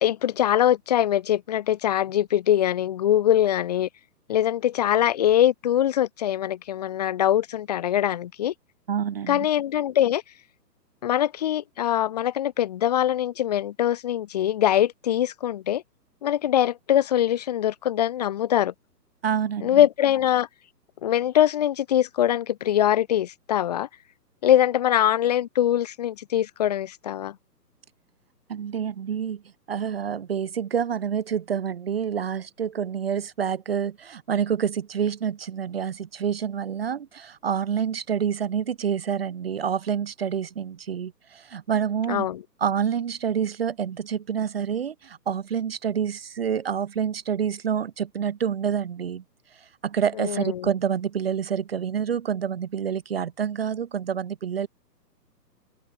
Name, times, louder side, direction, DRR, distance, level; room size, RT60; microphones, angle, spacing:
voice 1, 0.0-3.9 4.3-8.5 9.3-10.2 11.0-15.8 16.2-18.7 19.6-20.5 21.0-23.9 24.4-27.3 42.1-42.4 50.2-50.7, left 11 dB, 25° left, 2.5 m, -23 dB
voice 2, 8.9-9.5 19.2-19.8 28.5-29.4 29.7-42.3 42.6-49.2 49.6-54.7, right 8 dB, 35° right, 2.0 m, -27 dB
hypercardioid pair, 170°, 50 cm